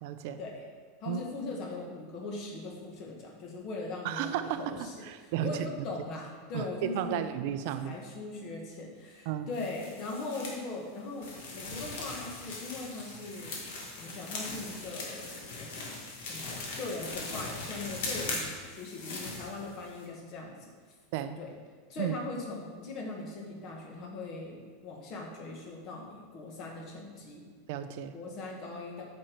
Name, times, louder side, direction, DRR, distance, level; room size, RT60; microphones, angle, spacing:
voice 1, 0.0-0.4 1.1-1.2 4.0-4.8 5.0-5.9 6.5-8.0 9.3-9.5 21.1-21.4 22.0-22.1 27.7-28.1, right 10 dB, 55° right, 10 dB, 0.5 m, -33 dB
voice 2, 1.0-7.2 7.8-13.6 13.9-20.7 21.4-21.5 21.9-27.4 28.1-29.0, left 3 dB, 35° left, 0 dB, 1.5 m, -40 dB
sound 1, 9.5-10.6 11.2-20.0, left 3 dB, 70° left, 1.7 m, -40 dB
7.7 x 5.5 x 4.5 m, 1.5 s
supercardioid pair, 165°, 0 cm